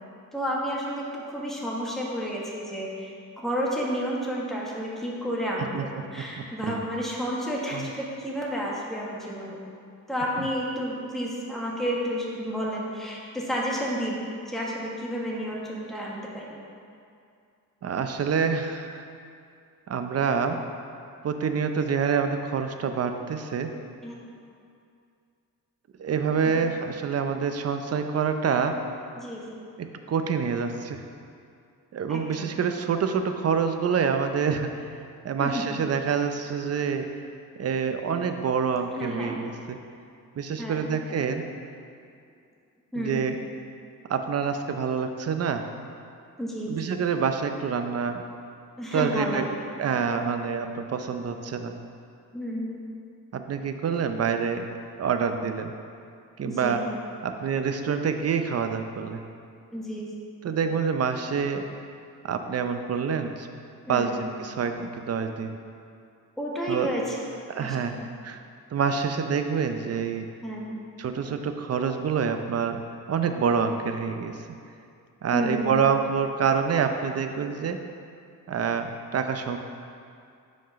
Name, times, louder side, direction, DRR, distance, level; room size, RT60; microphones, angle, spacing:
voice 1, 0.3-9.6 10.1-16.6 24.0-24.1 29.2-29.6 32.1-32.5 35.4-35.7 39.0-39.4 40.6-41.0 42.9-43.2 46.4-46.8 48.8-49.7 52.3-52.8 56.4-56.9 59.7-60.1 63.9-64.2 66.4-67.2 67.6-67.9 70.4-70.8 75.3-75.8, equal, ahead, -4 dB, 1.2 m, -31 dB
voice 2, 6.2-6.8 7.7-7.9 17.8-19.1 19.9-20.6 21.2-23.7 26.0-28.8 29.8-31.0 31.9-34.7 35.2-37.1 37.6-39.8 40.4-41.4 43.0-43.4 44.1-45.6 46.7-48.2 48.9-49.4 49.8-51.8 53.3-55.7 56.4-56.8 57.2-59.2 60.4-61.6 62.2-63.5 63.9-65.6 66.7-66.9 67.5-67.9 68.2-68.4 68.7-70.3 71.0-72.8 73.1-74.4 75.2-77.8 78.5-79.6, right 6 dB, 45° right, 7 dB, 0.6 m, -27 dB
6.2 x 4.4 x 5.7 m, 2.4 s
cardioid pair, 85°, 34 cm